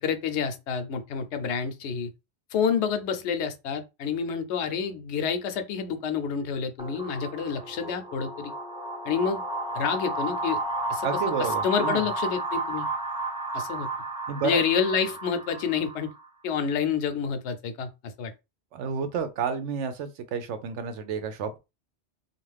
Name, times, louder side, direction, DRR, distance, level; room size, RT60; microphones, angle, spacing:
voice 1, 0.0-2.1 2.5-8.5 9.0-9.4 9.7-10.6 10.9-11.1 11.4-12.9 13.5-13.9 14.4-16.1 16.4-18.3, left 6 dB, 75° left, 0.9 m, -28 dB
sound 1, 6.8-16.3, right 2 dB, 10° right, 0.4 m, -32 dB
voice 2, 11.0-12.1 14.3-14.6 18.7-21.6, right 6 dB, 85° right, 0.9 m, -30 dB
2.5 x 2.4 x 3.2 m
omnidirectional pair, 1.2 m